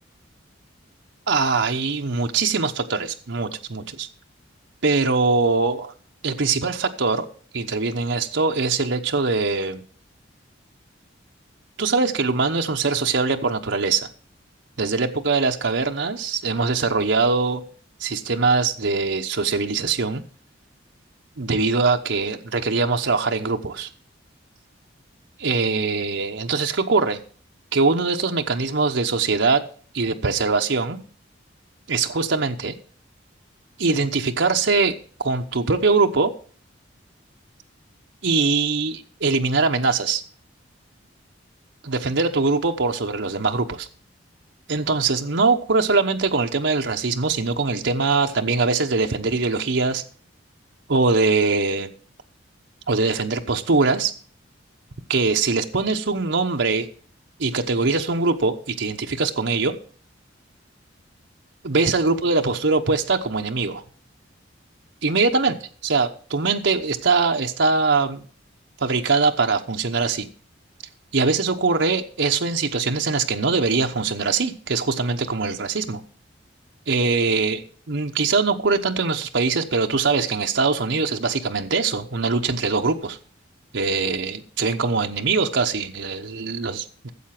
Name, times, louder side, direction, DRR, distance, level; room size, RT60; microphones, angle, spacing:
voice 1, 1.3-4.1 4.8-5.9 6.2-7.3 7.5-9.8 11.8-14.1 14.8-17.6 18.0-20.2 21.4-23.9 25.4-27.2 27.7-29.6 29.9-31.0 31.9-32.8 33.8-36.3 38.2-40.2 41.8-43.9 44.7-50.0 50.9-51.9 52.9-54.1 55.1-56.9 57.4-59.7 61.6-63.8 65.0-65.5 65.8-68.2 68.8-70.3 71.1-76.0 76.9-83.2 83.7-87.1, right 4 dB, 70° right, 4 dB, 0.9 m, -22 dB
13.5 x 7.7 x 5.9 m, 0.43 s
head